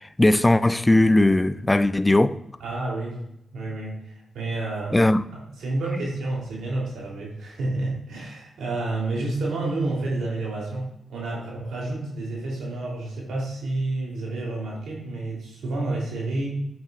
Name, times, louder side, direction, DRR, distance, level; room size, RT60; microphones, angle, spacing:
voice 1, 0.2-2.4 4.9-5.2, left 1 dB, 20° left, 0.5 m, -18 dB
voice 2, 2.6-3.2 3.5-5.0 5.3-16.5, right 2 dB, 85° right, 3.2 m, -30 dB
8.3 x 7.7 x 2.5 m
supercardioid pair, 50°, 0 cm